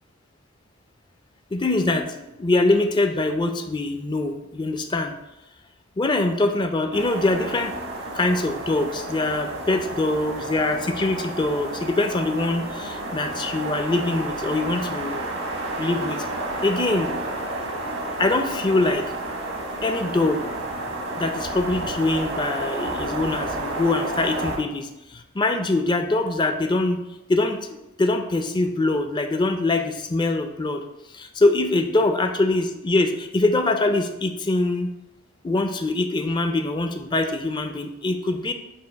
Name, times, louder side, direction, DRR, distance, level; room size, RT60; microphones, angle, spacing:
voice 1, 1.5-5.1 6.0-7.8 8.1-15.2 15.8-16.2 16.6-17.2 17.8-19.1 19.8-20.5 21.2-27.0 27.3-30.8 31.1-34.9 35.4-38.5, left 2 dB, 20° left, 6 dB, 0.4 m, -23 dB
sound 1, 6.9-24.6, right 1 dB, 80° right, 1.2 m, -31 dB
7.4 x 2.5 x 5.1 m, 0.95 s
head